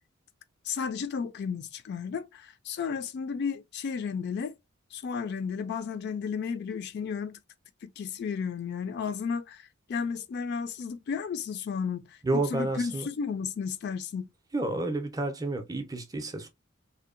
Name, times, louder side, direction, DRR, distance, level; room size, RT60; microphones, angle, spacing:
voice 1, 0.7-4.5 4.9-7.4 7.8-9.6 9.9-14.3, left 6 dB, 50° left, 0.3 m, -33 dB
voice 2, 12.2-13.1 14.5-16.5, right 2 dB, 15° right, 0.5 m, -30 dB
2.7 x 2.0 x 2.4 m
head